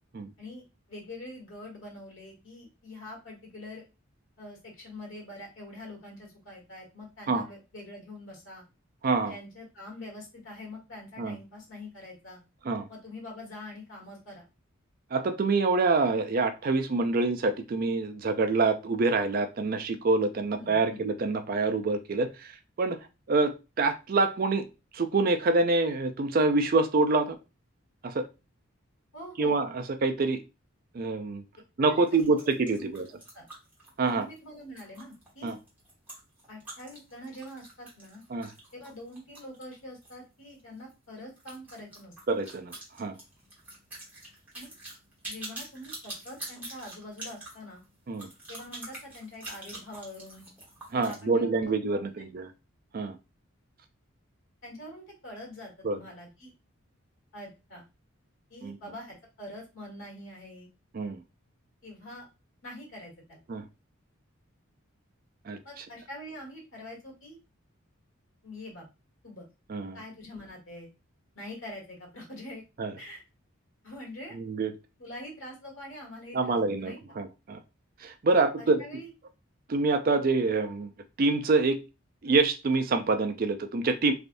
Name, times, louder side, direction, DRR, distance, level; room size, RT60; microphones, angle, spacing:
voice 1, 0.9-3.8 4.4-8.6 9.2-12.4 12.9-14.4 20.5-21.0 29.1-29.6 31.9-33.5 34.1-35.6 36.5-38.2 38.7-42.1 44.5-44.7 45.3-47.8 48.5-50.5 50.9-52.0 54.6-56.5 57.3-57.8 58.5-60.7 61.8-62.3 62.6-63.4 65.6-67.4 68.4-68.9 69.2-69.5 69.9-70.9 71.3-72.6 73.0-73.2 73.8-74.4 75.0-77.0 78.3-79.1, left 1 dB, 70° left, -2 dB, 1.6 m, -44 dB
voice 2, 9.0-9.3 11.2-11.3 12.7-12.9 15.1-22.5 22.8-23.0 23.3-24.7 24.9-27.4 28.0-28.2 29.4-30.4 30.9-31.4 31.8-33.0 34.0-34.2 35.4-35.6 38.3-38.5 42.3-43.1 48.1-48.3 50.9-52.5 52.9-53.2 55.8-56.0 58.6-58.8 60.9-61.2 63.5-63.6 65.5-65.8 69.7-70.0 72.8-72.9 74.3-74.7 76.3-77.6 78.0-78.8 79.7-80.9 81.2-81.8 82.2-84.1, right 3 dB, 45° right, 8 dB, 0.4 m, -26 dB
sound 1, 32.0-40.2 40.5-40.6 40.9-41.0 41.4-51.2, right 1 dB, 10° right, 1.1 m, -45 dB
3.3 x 2.5 x 2.5 m, 0.27 s
head